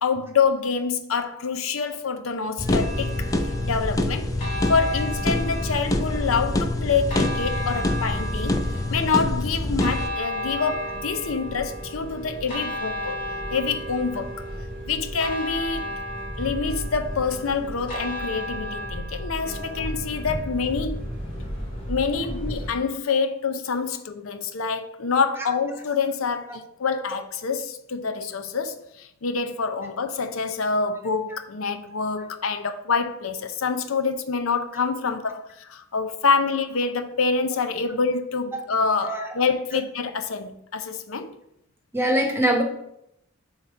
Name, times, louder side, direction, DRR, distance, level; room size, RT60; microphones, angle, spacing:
voice 1, 0.0-3.3 3.6-4.3 4.7-8.6 8.9-13.2 13.5-14.4 14.9-15.9 16.4-21.0 21.9-41.3, left 5 dB, 90° left, 0.6 m, -26 dB
sound 1, 2.6-10.1, left 2 dB, 15° left, 0.4 m, -26 dB
sound 2, 2.7-22.7, equal, 40° left, 2.7 m, -33 dB
voice 2, 41.9-42.6, right 1 dB, 10° right, 1.1 m, -24 dB
7.6 x 3.0 x 5.3 m
head